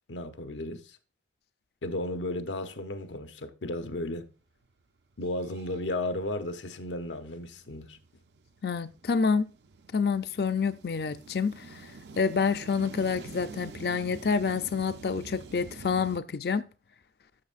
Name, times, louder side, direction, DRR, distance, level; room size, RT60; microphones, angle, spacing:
voice 1, 0.1-1.0 1.8-4.3 5.2-8.0, left 1 dB, 85° left, 0.8 m, -34 dB
sound 1, 4.6-4.7 5.1-16.2, right 4 dB, 70° right, 0.5 m, -47 dB
voice 2, 8.6-9.4 9.9-16.7, left 5 dB, 55° left, 0.4 m, -28 dB
12.5 x 6.3 x 2.5 m
head